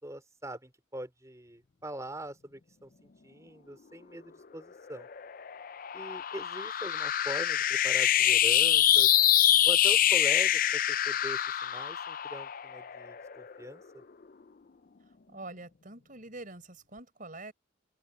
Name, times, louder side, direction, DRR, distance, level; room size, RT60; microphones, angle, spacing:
voice 1, 0.0-5.1 5.9-9.1 9.6-14.0, right 1 dB, 15° right, 4.8 m, -42 dB
sound 1, 4.9-13.6, left 11 dB, 45° left, 0.5 m, -25 dB
voice 2, 15.3-17.5, right 2 dB, 45° right, 4.7 m, -45 dB
open air
head